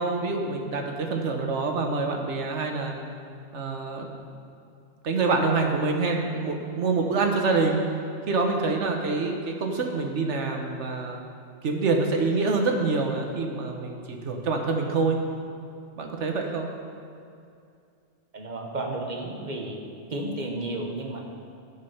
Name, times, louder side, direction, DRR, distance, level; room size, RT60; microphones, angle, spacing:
voice 1, 0.0-2.9 3.5-4.2 5.0-7.8 8.3-11.2 11.6-15.2 16.0-16.7, right 3 dB, 80° right, 2 dB, 1.4 m, -26 dB
voice 2, 18.3-19.8 20.1-21.2, right 2 dB, 40° right, 1 dB, 1.2 m, -32 dB
11.0 x 7.5 x 5.6 m, 2.5 s
omnidirectional pair, 1.2 m